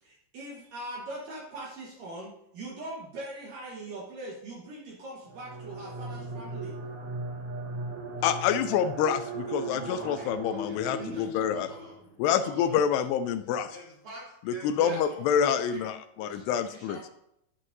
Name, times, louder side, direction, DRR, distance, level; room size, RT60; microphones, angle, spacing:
voice 1, 0.0-6.8 11.0-11.2 14.7-15.0, right 2 dB, 65° right, -3 dB, 2.5 m, -41 dB
sound 1, 5.3-12.2, right 2 dB, 85° right, 3.7 m, -37 dB
voice 2, 8.2-11.7 12.2-13.8 14.6-17.0, left 8 dB, 85° left, 10 dB, 2.6 m, -27 dB
voice 3, 9.9-12.0 12.4-12.8 13.7-15.9 16.2-17.1, right 1 dB, 45° right, -5 dB, 4.8 m, -47 dB
11.5 x 11.0 x 2.6 m, 0.78 s
omnidirectional pair, 4.9 m